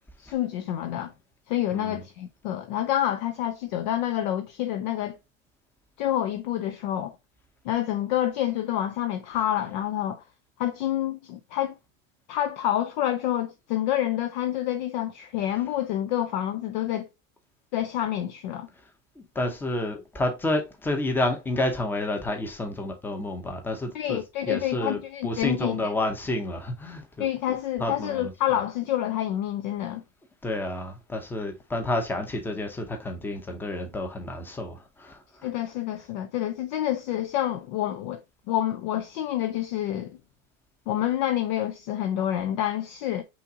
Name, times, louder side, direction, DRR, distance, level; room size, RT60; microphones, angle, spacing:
voice 1, 0.2-1.1 1.5-5.2 6.0-7.1 7.6-10.2 10.6-11.7 12.3-17.1 17.7-18.7 23.9-25.9 27.2-30.0 35.4-38.2 38.5-40.2 40.9-43.2, left 12 dB, 35° left, 0.4 m, -28 dB
voice 2, 19.2-24.2 24.5-27.3 27.8-28.3 30.4-35.2, left 1 dB, 5° left, 0.7 m, -30 dB
5.7 x 2.5 x 3.7 m
supercardioid pair, 150°, 39 cm